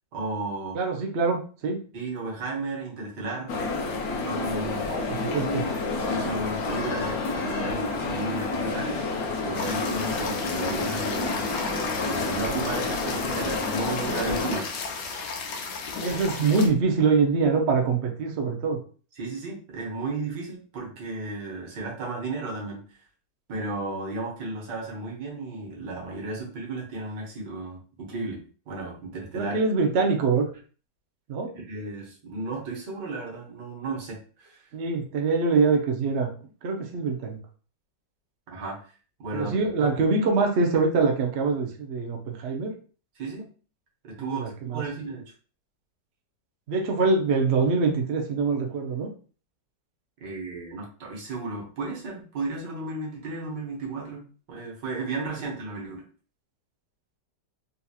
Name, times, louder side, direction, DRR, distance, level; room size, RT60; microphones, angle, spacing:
voice 1, 0.1-0.8 1.9-3.6 4.2-4.9 6.0-9.1 9.4-11.4 12.1-14.7 19.2-22.8 23.5-28.4 28.7-29.6 31.5-34.6 38.5-38.8 39.2-39.6 43.2-43.5 44.0-45.2 50.2-56.0, right 3 dB, 80° right, -2 dB, 1.7 m, -34 dB
voice 2, 0.7-1.8 4.9-5.7 16.0-18.8 29.3-30.5 31.3-31.5 34.7-36.3 36.6-37.4 39.3-42.7 44.2-44.8 46.7-49.1, right 4 dB, 55° right, 2 dB, 0.7 m, -24 dB
sound 1, 3.5-14.6, left 3 dB, 65° left, 1.1 m, -29 dB
sound 2, 9.5-16.7, left 4 dB, 90° left, 1.3 m, -34 dB
4.0 x 2.8 x 2.3 m, 0.39 s
omnidirectional pair, 1.8 m